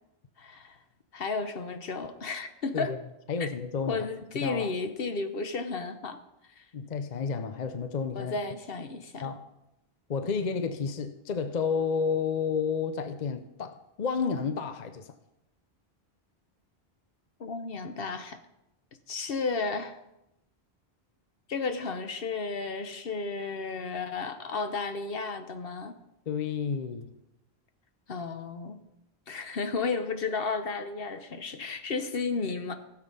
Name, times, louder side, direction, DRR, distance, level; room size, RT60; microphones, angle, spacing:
voice 1, 0.4-0.8 1.1-2.9 3.4-3.5 3.8-6.2 6.6-6.7 8.1-9.3 17.4-18.4 19.1-20.0 21.5-25.9 28.1-28.8 29.3-32.7, left 4 dB, 65° left, 1.2 m, -33 dB
voice 2, 3.3-4.1 4.3-4.7 6.7-8.4 9.2-9.4 10.1-15.1 26.3-27.1, left 5 dB, 50° left, 0.8 m, -31 dB
16.0 x 7.3 x 5.4 m
omnidirectional pair, 1.0 m